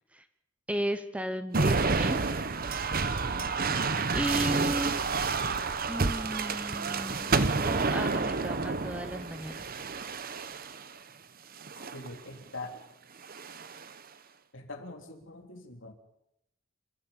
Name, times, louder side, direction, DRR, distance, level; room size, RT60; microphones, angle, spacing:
voice 1, 0.7-2.2 4.1-5.0 5.9-9.8, right 1 dB, 5° right, 10 dB, 0.9 m, -34 dB
sound 1, 1.5-10.9 11.6-12.1 13.2-13.9, right 4 dB, 45° right, 1.0 m, -29 dB
voice 2, 11.7-12.8 14.5-15.9, left 2 dB, 65° left, 3 dB, 3.3 m, -43 dB
26.5 x 14.0 x 7.3 m, 0.81 s
head